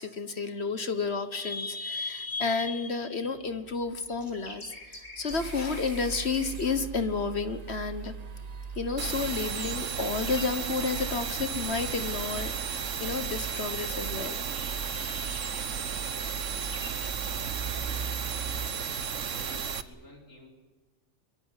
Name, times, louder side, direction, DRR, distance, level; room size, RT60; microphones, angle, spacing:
voice 1, 0.0-8.1 8.8-15.6, left 4 dB, 55° left, 10 dB, 1.6 m, -31 dB
sound 1, 3.3-19.7, left 1 dB, 35° left, 4.6 m, -51 dB
sound 2, 5.3-18.7, right 6 dB, 35° right, 0.8 m, -40 dB
sound 3, 9.0-19.8, right 7 dB, 70° right, 1.5 m, -34 dB
voice 2, 19.2-20.5, left 1 dB, 80° left, 0 dB, 5.2 m, -51 dB
24.0 x 22.5 x 8.2 m, 1.3 s
omnidirectional pair, 1.4 m